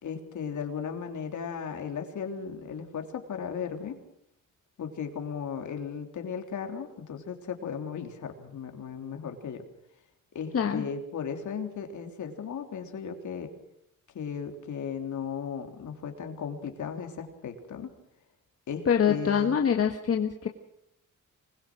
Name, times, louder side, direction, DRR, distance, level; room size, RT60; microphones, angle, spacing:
voice 1, 0.0-4.0 4.8-9.6 10.3-13.5 14.1-17.9 18.7-19.5, left 7 dB, 65° left, 4 dB, 3.5 m, -36 dB
voice 2, 10.5-10.8 18.9-20.5, left 7 dB, 45° left, 4 dB, 1.5 m, -25 dB
26.0 x 21.0 x 6.3 m, 0.77 s
cardioid pair, 110°, 32 cm